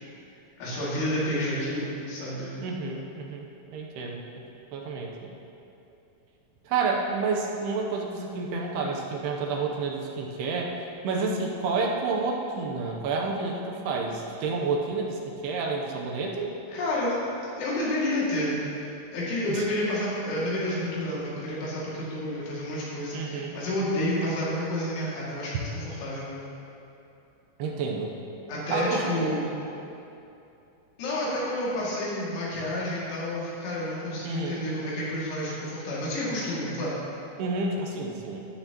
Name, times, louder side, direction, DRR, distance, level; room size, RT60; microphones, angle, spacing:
voice 1, 0.6-2.6 16.7-17.2 17.6-26.3 28.5-29.4 31.0-37.0, left 1 dB, 75° left, -8 dB, 4.8 m, -30 dB
voice 2, 2.6-3.5 3.7-4.2 4.7-5.3 6.6-10.7 11.0-16.5 19.5-19.6 23.1-23.6 27.6-28.1 28.7-29.4 34.2-34.6 37.4-38.5, right 4 dB, 75° right, 0 dB, 2.5 m, -29 dB
13.5 x 10.5 x 3.0 m, 2.8 s
omnidirectional pair, 5.5 m